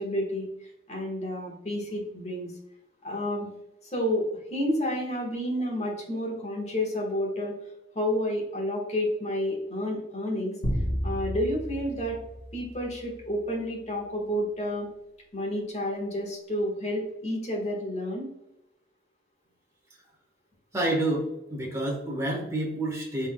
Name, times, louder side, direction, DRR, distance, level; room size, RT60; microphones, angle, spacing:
voice 1, 0.0-2.5 3.0-3.5 3.9-7.5 7.9-10.5 11.0-12.2 12.5-14.9 15.3-18.3, equal, 35° left, -2 dB, 1.3 m, -30 dB
sound 1, 10.6-13.3, equal, 75° left, 1.3 m, -32 dB
voice 2, 20.7-23.3, right 1 dB, 15° right, -2 dB, 1.2 m, -29 dB
5.6 x 3.6 x 2.2 m, 0.87 s
head